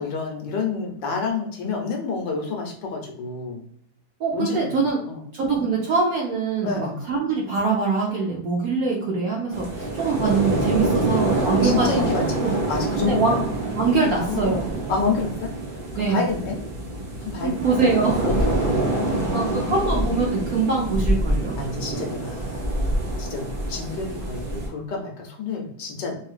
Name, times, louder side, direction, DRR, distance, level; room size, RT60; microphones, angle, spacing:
voice 1, 0.0-3.6 4.3-4.7 5.0-5.2 6.6-7.0 10.8-11.1 11.6-13.4 14.0-14.6 14.9-16.6 17.2-17.6 18.2-19.8 21.6-22.6 23.2-26.2, left 4 dB, 70° left, 1 dB, 1.3 m, -29 dB
voice 2, 4.2-5.0 5.3-12.5 13.1-13.3 13.8-14.7 16.0-16.2 17.4-18.4 19.3-21.5, right 4 dB, 65° right, -2 dB, 0.9 m, -23 dB
sound 1, 9.5-24.7, right 1 dB, 85° right, 0.4 m, -26 dB
3.8 x 2.8 x 2.4 m, 0.66 s
omnidirectional pair, 2.1 m